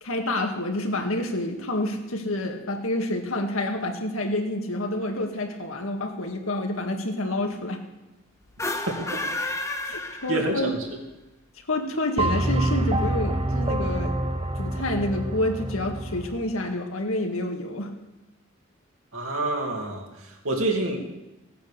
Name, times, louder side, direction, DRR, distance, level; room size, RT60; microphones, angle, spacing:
voice 1, 0.0-7.8 9.8-10.8 11.7-14.2 14.6-17.9, left 1 dB, 85° left, 4 dB, 2.0 m, -28 dB
sound 1, 8.5-10.8, left 2 dB, 15° left, 1.0 m, -31 dB
voice 2, 10.3-10.8 19.1-20.0 20.4-21.0, right 2 dB, 85° right, 1 dB, 2.8 m, -26 dB
sound 2, 12.2-16.4, right 1 dB, 25° right, 0.9 m, -26 dB
17.0 x 9.1 x 6.8 m, 1.0 s
head